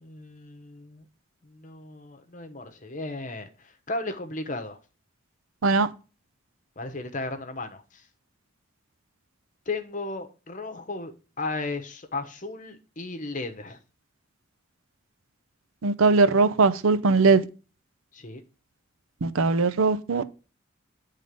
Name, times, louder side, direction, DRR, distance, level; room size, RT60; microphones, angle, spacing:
voice 1, 0.0-1.0 1.4-3.5 3.9-4.8 6.8-7.8 9.7-13.8 18.1-18.4, left 2 dB, 40° left, 1.0 m, -35 dB
voice 2, 15.8-17.4 19.2-20.3, right 4 dB, 80° right, 0.6 m, -20 dB
9.0 x 3.8 x 5.2 m
head